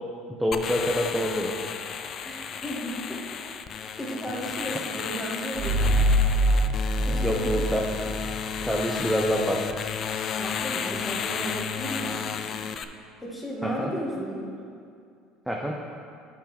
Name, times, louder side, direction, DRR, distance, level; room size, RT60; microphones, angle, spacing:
voice 1, 0.4-1.6 7.2-7.8 8.6-9.6 13.6-13.9 15.5-15.7, equal, 5° right, -1 dB, 0.6 m, -26 dB
sound 1, 0.5-12.8, left 7 dB, 45° left, 0.4 m, -33 dB
voice 2, 2.2-3.2 4.0-6.0 7.0-8.0 10.4-12.7 13.2-14.5, equal, 10° left, -3 dB, 1.7 m, -34 dB
sound 2, 5.6-8.9, equal, 60° right, 0.8 m, -24 dB
9.1 x 4.8 x 4.3 m, 2.3 s
supercardioid pair, 95°, 0 cm